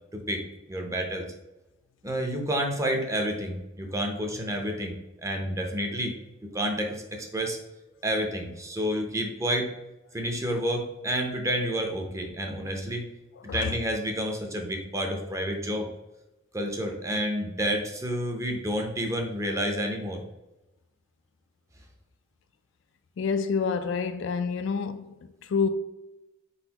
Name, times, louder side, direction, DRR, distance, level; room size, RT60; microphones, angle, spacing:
voice 1, 0.1-1.3 2.0-6.1 6.4-7.6 8.0-9.7 10.1-13.1 13.4-15.9 16.5-20.2, equal, 15° right, 0.6 m, -29 dB
voice 2, 13.5-13.8 23.2-25.7, left 5 dB, 65° left, 0.3 m, -28 dB
4.5 x 4.0 x 2.8 m
head